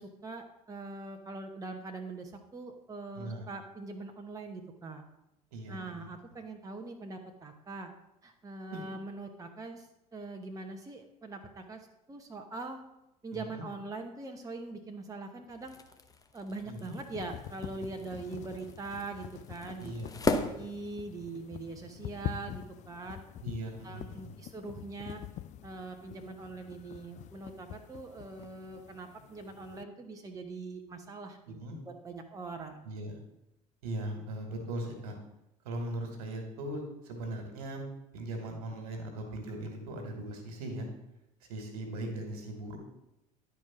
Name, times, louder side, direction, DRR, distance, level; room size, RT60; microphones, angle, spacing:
voice 1, 0.0-5.0 5.7-7.9 8.2-9.9 10.1-11.8 12.1-12.8 13.2-15.8 16.3-19.9 20.5-23.2 23.8-25.2 25.6-31.4 32.0-32.9, right 3 dB, 15° right, 4 dB, 1.0 m, -42 dB
voice 2, 3.1-3.5 5.5-6.1 8.7-8.8 13.3-13.7 16.6-17.0 19.8-20.6 23.4-24.4 31.5-31.8 32.8-33.2 33.8-35.2 35.6-37.8 38.1-40.9 41.4-42.8, right 1 dB, 65° right, 4 dB, 1.9 m, -39 dB
sound 1, 15.5-21.5, left 3 dB, 20° left, 0.9 m, -38 dB
sound 2, 16.6-29.8, left 12 dB, 35° left, 0.4 m, -46 dB
11.0 x 4.5 x 5.9 m, 0.88 s
figure-of-eight pair, 65°, 20 cm